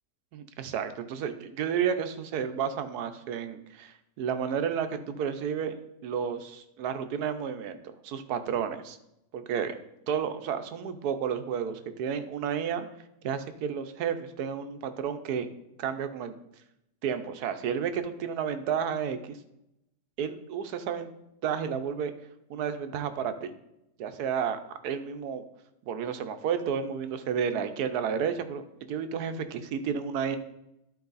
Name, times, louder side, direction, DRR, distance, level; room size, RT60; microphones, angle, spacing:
voice 1, 0.3-5.7 6.0-8.9 9.3-9.8 10.1-12.9 13.2-15.5 15.8-16.4 17.0-19.4 20.2-21.1 21.4-22.1 22.5-23.5 24.0-24.6 24.8-25.4 25.9-30.4, right 7 dB, 85° right, 9 dB, 1.3 m, -31 dB
12.0 x 4.6 x 4.0 m, 0.84 s
omnidirectional pair, 1.6 m